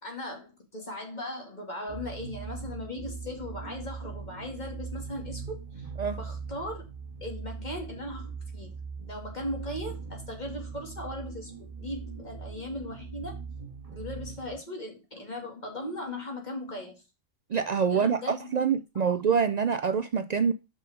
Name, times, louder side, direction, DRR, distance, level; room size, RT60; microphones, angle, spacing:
voice 1, 0.0-5.9 6.2-6.8 7.2-8.7 9.1-13.4 13.9-17.0 17.9-18.7 19.1-19.2, left 1 dB, 35° left, 2.7 m, -38 dB
sound 1, 1.9-14.6, right 5 dB, 30° right, 1.5 m, -40 dB
voice 2, 17.5-20.5, right 6 dB, 85° right, 0.3 m, -26 dB
6.2 x 5.5 x 5.1 m
omnidirectional pair, 1.3 m